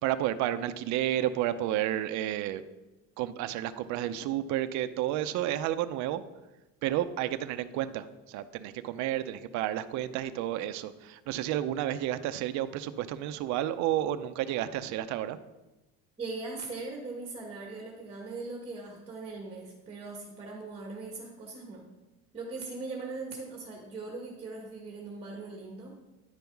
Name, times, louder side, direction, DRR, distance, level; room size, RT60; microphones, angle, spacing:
voice 1, 0.0-2.6 3.2-6.2 6.8-15.4, right 12 dB, 60° right, 11 dB, 0.6 m, -31 dB
voice 2, 16.2-21.8 22.3-25.9, right 3 dB, 20° right, -1 dB, 1.5 m, -40 dB
10.5 x 5.4 x 4.6 m, 1.0 s
cardioid pair, 145°, 32 cm